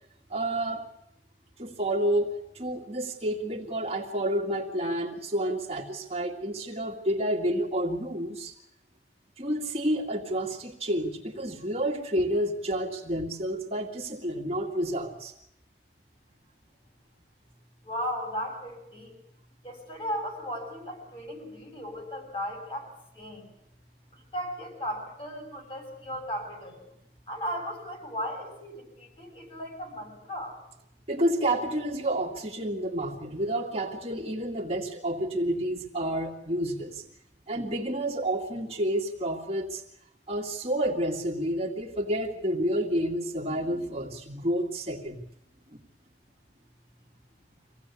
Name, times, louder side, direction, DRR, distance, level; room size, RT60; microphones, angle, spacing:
voice 1, 0.3-0.8 1.6-8.5 9.4-15.3 31.1-37.1 37.5-39.8 40.3-45.2 45.7-45.8, right 1 dB, 35° right, -1 dB, 2.1 m, -29 dB
voice 2, 17.8-19.2 19.6-22.9 23.1-23.5 24.1-26.8 27.3-30.6, equal, 30° left, 1 dB, 6.8 m, -36 dB
25.0 x 17.0 x 8.4 m, 0.83 s
head